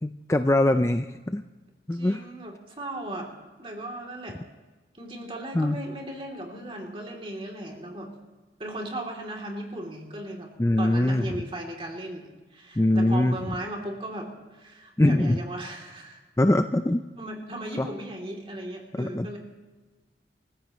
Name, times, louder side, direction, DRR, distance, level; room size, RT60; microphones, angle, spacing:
voice 1, 0.0-1.4 1.9-2.3 5.5-5.8 10.6-11.4 12.8-13.4 15.0-15.4 16.4-17.0 17.8-17.9 18.9-19.3, left 1 dB, 15° left, 8 dB, 0.4 m, -22 dB
voice 2, 1.9-3.3 3.6-4.4 4.9-8.1 8.6-10.5 10.8-16.2 17.2-19.4, right 1 dB, 30° right, 1 dB, 3.0 m, -37 dB
28.5 x 15.0 x 3.1 m, 1.3 s
head